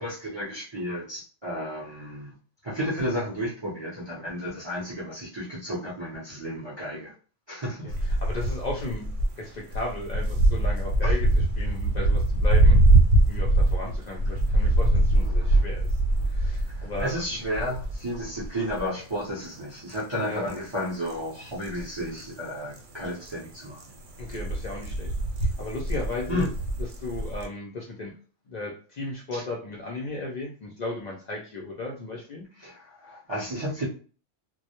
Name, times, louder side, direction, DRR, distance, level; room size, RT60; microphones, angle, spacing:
voice 1, 0.0-2.4 2.6-7.1 7.5-8.0 11.0-11.1 15.2-15.6 16.7-23.8 26.3-26.5 29.3-29.4 32.6-33.9, equal, 40° right, -7 dB, 0.4 m, -32 dB
sound 1, 7.9-9.3 9.6-19.1 19.4-19.5 19.9-20.0 20.5-20.8 21.1-22.8 23.0-23.3 23.6-27.5, right 1 dB, 85° right, 1.0 m, -23 dB
voice 2, 8.0-9.1 9.4-12.8 13.3-16.0 16.3-17.4 20.1-20.5 24.2-26.5 26.8-28.1 28.5-32.5, left 2 dB, 70° left, -2 dB, 0.4 m, -35 dB
2.2 x 2.0 x 2.8 m, 0.40 s
omnidirectional pair, 1.2 m